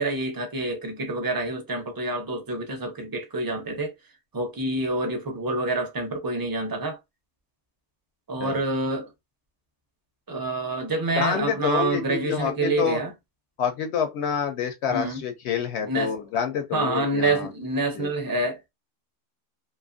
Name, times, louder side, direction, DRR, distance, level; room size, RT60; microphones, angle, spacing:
voice 1, 0.0-3.9 4.3-7.0 8.3-9.1 10.3-13.1 14.9-15.2 15.8-16.1 16.7-18.6, right 2 dB, 25° right, 0.6 m, -27 dB
voice 2, 11.2-13.0 13.6-17.5 17.9-18.1, left 7 dB, 70° left, 0.8 m, -27 dB
2.7 x 2.4 x 2.5 m
omnidirectional pair, 1.2 m